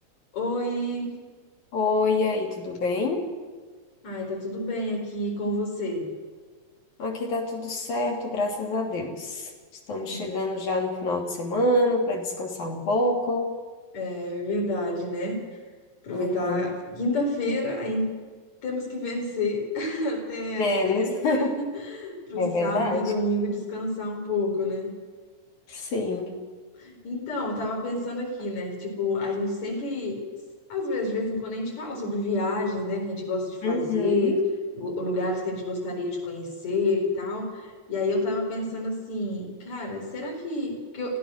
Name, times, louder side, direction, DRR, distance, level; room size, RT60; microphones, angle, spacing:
voice 1, 0.3-1.1 4.0-6.1 10.1-10.2 13.9-15.4 16.0-18.1 18.6-24.9 26.8-30.2 30.7-34.3 34.7-41.2, left 2 dB, 70° left, 0 dB, 6.1 m, -29 dB
voice 2, 1.7-3.3 7.0-9.5 9.9-13.5 16.1-16.6 20.6-21.6 22.4-23.1 25.7-26.4 33.6-34.4, left 2 dB, 90° left, 1 dB, 4.4 m, -26 dB
24.5 x 16.0 x 6.6 m, 1.4 s
omnidirectional pair, 3.3 m